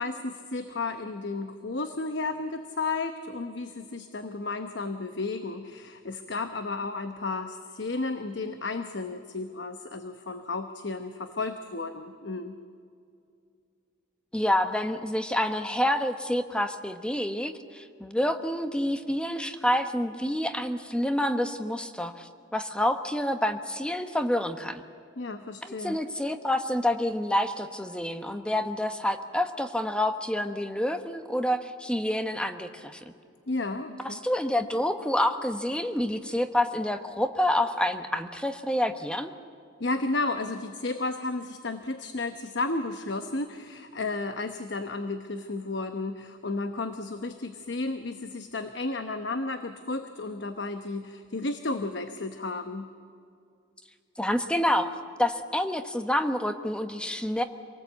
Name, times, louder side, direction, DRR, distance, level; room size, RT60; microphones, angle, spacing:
voice 1, 0.0-12.6 25.2-26.0 33.5-34.2 39.8-52.9, left 3 dB, 60° left, 8 dB, 1.0 m, -33 dB
voice 2, 14.3-24.8 25.6-33.0 34.0-39.3 54.2-57.4, left 1 dB, 5° left, 8 dB, 1.0 m, -28 dB
27.0 x 19.0 x 8.2 m, 2.4 s
head